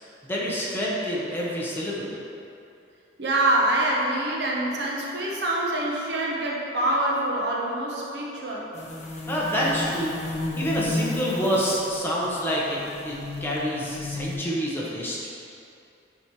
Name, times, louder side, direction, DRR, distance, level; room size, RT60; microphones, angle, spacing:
voice 1, 0.2-2.2 9.3-10.2 10.5-12.8 13.0-15.3, equal, 15° left, -6 dB, 1.1 m, -27 dB
voice 2, 3.2-8.7, right 1 dB, 65° right, -3 dB, 1.0 m, -25 dB
sound 1, 8.7-14.4, left 1 dB, 40° left, 0.9 m, -33 dB
9.4 x 4.3 x 3.2 m, 2.7 s
head